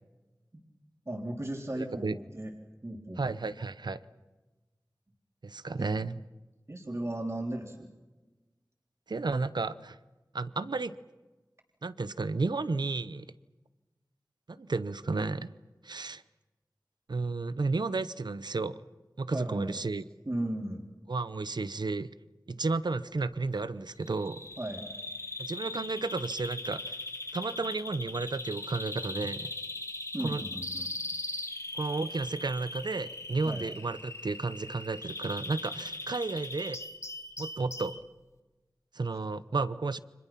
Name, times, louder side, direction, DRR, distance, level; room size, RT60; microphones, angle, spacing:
voice 1, 1.1-2.5 2.8-3.5 5.8-5.9 6.7-7.9 19.3-19.8 20.3-20.9 24.6-24.8 30.1-30.9 33.4-33.6, right 1 dB, 40° right, 0 dB, 3.8 m, -36 dB
voice 2, 1.8-2.2 3.2-4.0 5.4-6.2 9.1-10.0 10.3-10.9 11.8-13.3 14.5-15.5 15.8-16.2 17.1-18.8 19.2-20.0 21.1-22.1 22.5-24.5 25.4-27.0 27.3-29.5 30.2-30.4 31.7-36.8 37.4-38.0 38.9-40.0, right 3 dB, 85° right, 14 dB, 0.8 m, -32 dB
Bird vocalization bird call bird song, 24.0-38.0, left 2 dB, 40° left, 1.6 m, -40 dB
30.0 x 25.5 x 5.9 m, 1.2 s
wide cardioid pair, 55°, 7 cm